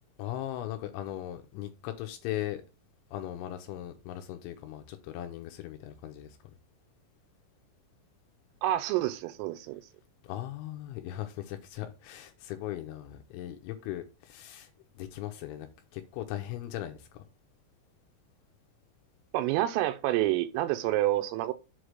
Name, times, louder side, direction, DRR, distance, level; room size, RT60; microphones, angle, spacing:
voice 1, 0.2-2.6 3.1-6.4 10.2-14.7 15.0-17.1, left 13 dB, 80° left, 2.8 m, -38 dB
voice 2, 8.6-9.8 19.3-21.5, right 14 dB, 85° right, 3.1 m, -28 dB
7.9 x 3.2 x 6.3 m
omnidirectional pair, 5.9 m